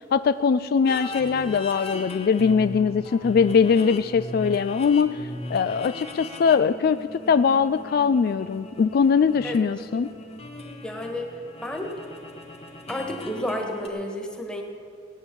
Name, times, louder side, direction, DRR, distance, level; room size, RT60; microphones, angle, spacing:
voice 1, 0.1-5.2 5.5-10.1, left 6 dB, 55° left, 13 dB, 0.3 m, -21 dB
sound 1, 0.8-13.9, left 2 dB, 35° left, 1.2 m, -38 dB
voice 2, 10.8-11.3 11.6-12.0 12.9-14.6, left 1 dB, 5° left, 1 dB, 1.6 m, -31 dB
17.5 x 9.1 x 7.0 m, 2.3 s
head